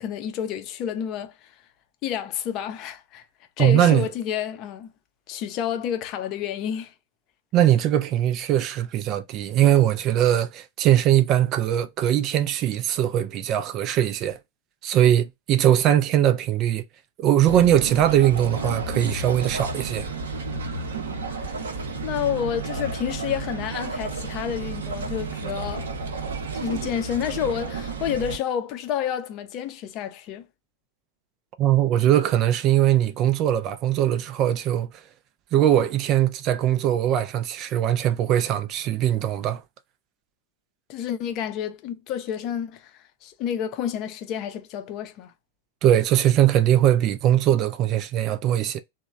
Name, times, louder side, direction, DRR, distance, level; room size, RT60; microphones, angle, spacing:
voice 1, 0.0-1.5 2.0-3.3 3.6-4.9 5.3-6.9 21.3-21.7 22.0-25.9 26.5-30.5 40.9-45.3, left 9 dB, 40° left, 0.5 m, -29 dB
voice 2, 3.6-4.1 7.5-14.4 14.8-16.8 17.2-20.1 31.6-34.9 35.5-39.6 45.8-48.8, right 11 dB, 35° right, 0.4 m, -21 dB
sound 1, 17.4-28.4, right 3 dB, 65° right, 0.7 m, -32 dB
3.0 x 2.1 x 3.6 m
figure-of-eight pair, 90°, 0 cm